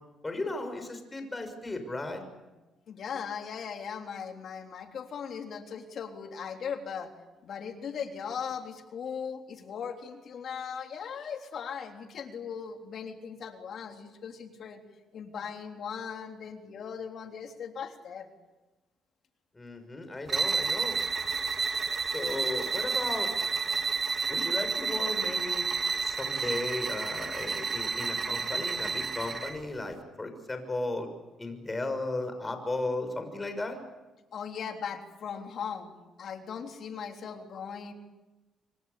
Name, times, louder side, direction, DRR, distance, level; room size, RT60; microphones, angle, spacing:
voice 1, 0.2-2.2 19.5-21.0 22.0-23.3 24.3-25.6 26.0-31.1 31.4-33.8, left 2 dB, 20° left, 7 dB, 6.4 m, -35 dB
voice 2, 2.9-7.1 7.4-14.8 15.1-18.3 34.3-37.9, left 7 dB, 60° left, 4 dB, 3.5 m, -38 dB
sound 1, 20.3-29.6, right 4 dB, 40° right, 2.8 m, -30 dB
27.5 x 24.0 x 8.4 m, 1.1 s
cardioid pair, 90°, 0 cm